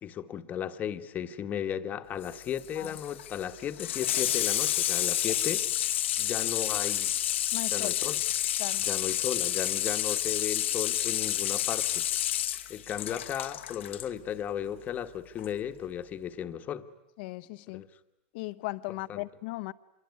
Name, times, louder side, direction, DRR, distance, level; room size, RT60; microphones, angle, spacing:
voice 1, 0.0-5.7 6.2-7.1 7.7-8.2 8.8-12.0 12.7-16.9 17.7-17.9 19.1-19.2, left 9 dB, 25° left, 1.3 m, -35 dB
Water tap faucet / Sink (filling or washing), 2.2-14.1 15.4-15.5, left 12 dB, 85° left, 1.2 m, -30 dB
voice 2, 7.5-8.0 8.6-8.8 17.2-17.9 18.3-19.7, left 21 dB, 55° left, 1.0 m, -37 dB
26.5 x 23.0 x 9.5 m
supercardioid pair, 145°, 6 cm